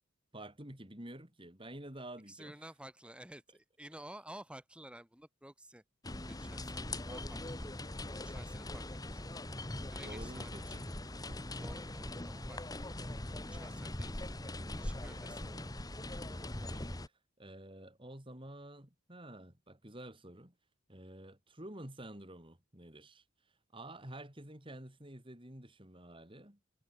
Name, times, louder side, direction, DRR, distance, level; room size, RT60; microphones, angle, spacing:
voice 1, 0.3-2.6 10.0-10.9 11.3-11.4 13.3-13.8 15.0-15.7 16.7-17.1 17.4-20.5 20.9-23.2 23.7-26.8, right 1 dB, 25° right, 3.8 m, -50 dB
voice 2, 2.3-5.8 6.3-7.7 8.1-9.4 9.9-11.0 11.6-12.8 13.4-14.3 14.8-15.7, right 1 dB, 5° right, 2.0 m, -53 dB
sound 1, 6.0-17.1, left 1 dB, 20° left, 1.5 m, -41 dB
head